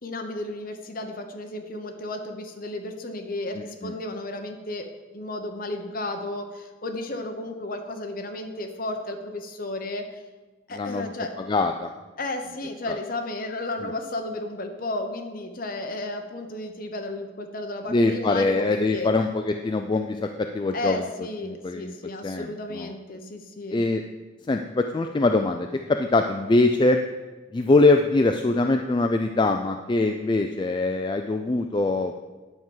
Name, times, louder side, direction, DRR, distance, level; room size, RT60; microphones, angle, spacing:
voice 1, 0.0-4.9 5.1-10.2 10.7-11.4 12.2-19.1 20.7-23.8, left 2 dB, 45° left, 5 dB, 1.0 m, -33 dB
voice 2, 3.5-3.9 10.7-11.1 11.5-11.9 12.9-13.0 13.8-13.9 17.9-21.0 21.4-21.9 22.2-22.5 22.7-22.9 23.7-24.0 24.5-27.0 27.5-32.2, left 2 dB, 25° left, 5 dB, 0.3 m, -23 dB
9.6 x 4.7 x 7.3 m, 1.2 s
head